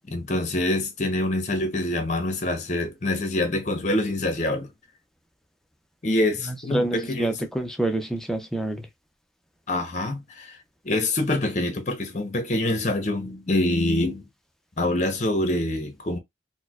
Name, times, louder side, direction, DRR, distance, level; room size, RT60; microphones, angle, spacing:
voice 1, 0.1-4.7 6.0-7.5 9.7-10.6 10.8-14.2 14.8-16.2, left 1 dB, 40° left, 0.8 m, -25 dB
voice 2, 6.7-8.9, right 2 dB, ahead, 0.4 m, -27 dB
4.4 x 2.1 x 2.3 m
head